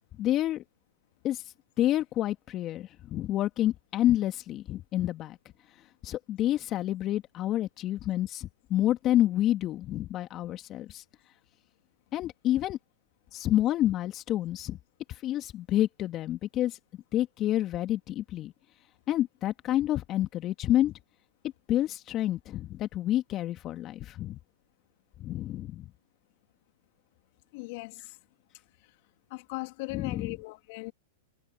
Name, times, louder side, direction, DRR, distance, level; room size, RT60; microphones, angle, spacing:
voice 1, 0.2-0.6 1.2-1.4 1.8-5.4 6.0-11.0 12.1-12.8 13.3-14.8 15.1-16.8 17.1-18.5 19.1-20.9 21.7-24.4 25.2-25.9 29.9-30.4, left 13 dB, 35° left, 2.3 m, -28 dB
voice 2, 27.5-28.1 29.3-30.9, left 26 dB, 55° left, 2.5 m, -38 dB
hypercardioid pair, 110°, 0 cm